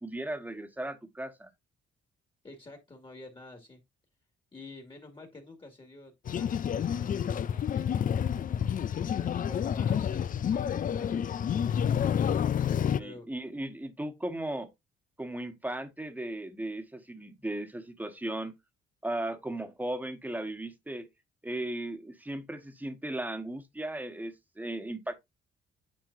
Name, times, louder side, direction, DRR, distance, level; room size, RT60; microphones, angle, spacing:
voice 1, 0.0-1.5 13.0-14.7 15.2-18.5 19.0-21.1 21.4-25.1, right 1 dB, 10° right, 1.4 m, -36 dB
voice 2, 2.4-3.8 4.5-8.6 9.0-11.8 13.0-13.3, left 2 dB, 25° left, 2.1 m, -50 dB
sound 1, 6.3-13.0, left 8 dB, 45° left, 0.5 m, -29 dB
9.1 x 4.5 x 2.7 m
cardioid pair, 90°, 20 cm